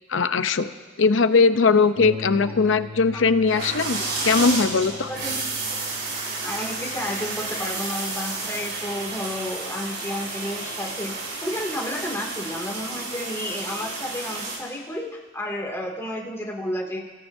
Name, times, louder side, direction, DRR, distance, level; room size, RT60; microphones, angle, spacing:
voice 1, 0.1-0.7 1.0-5.1, left 4 dB, 70° left, 11 dB, 0.6 m, -20 dB
Harp, 1.9-11.1 12.0-12.1 12.5-12.6, left 3 dB, 80° right, 2.3 m, -41 dB
sound 1, 3.4-14.6, right 3 dB, 60° right, 5.5 m, -31 dB
voice 2, 5.1-5.4 6.4-15.1 15.3-17.0, left 1 dB, 15° left, -2 dB, 2.3 m, -31 dB
29.0 x 17.0 x 2.7 m, 1.4 s
head